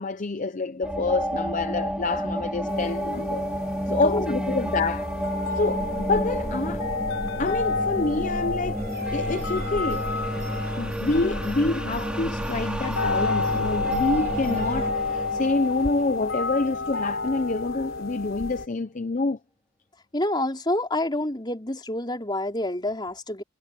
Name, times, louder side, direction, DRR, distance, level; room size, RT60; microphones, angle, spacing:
voice 1, 0.0-3.5 3.9-5.1 5.5-6.8 7.4-8.9 9.1-10.1 10.8-19.4, left 3 dB, 35° left, 0.6 m, -27 dB
sound 1, 0.8-17.1, equal, 5° right, 2.8 m, -31 dB
sound 2, 2.7-18.7, left 4 dB, 60° left, 4.8 m, -31 dB
voice 2, 3.9-4.3 20.1-23.4, left 1 dB, 20° left, 4.6 m, -28 dB
sound 3, 8.8-14.9, right 4 dB, 45° right, 4.2 m, -46 dB
head